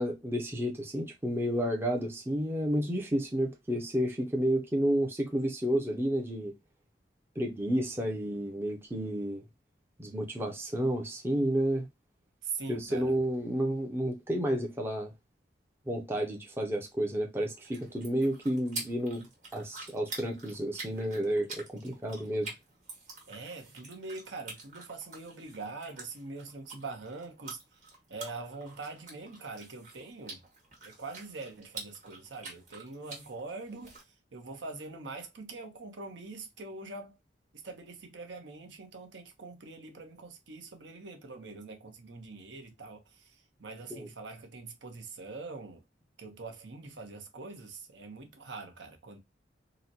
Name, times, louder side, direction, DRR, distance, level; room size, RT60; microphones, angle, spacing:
voice 1, 0.0-6.5 7.4-9.4 10.0-11.9 12.7-15.1 15.9-19.2 19.5-22.5 43.9-44.1, equal, 15° right, 0.5 m, -31 dB
voice 2, 12.4-13.2 23.3-27.6 28.1-30.4 30.8-37.2 37.5-45.8 46.2-49.2, right 3 dB, 75° right, 0.8 m, -43 dB
sound 1, 17.4-34.0, right 3 dB, 40° right, 1.3 m, -47 dB
3.9 x 2.1 x 2.6 m
head